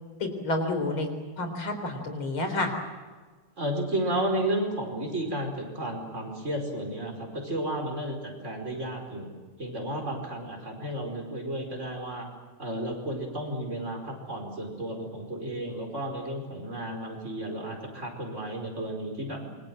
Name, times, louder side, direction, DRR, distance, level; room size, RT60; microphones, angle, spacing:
voice 1, 0.2-1.1 1.4-2.7, left 2 dB, 75° left, 6 dB, 4.7 m, -29 dB
voice 2, 3.6-12.3 12.6-19.6, right 1 dB, 35° right, 1 dB, 5.4 m, -33 dB
27.5 x 24.0 x 7.7 m, 1.4 s
omnidirectional pair, 2.3 m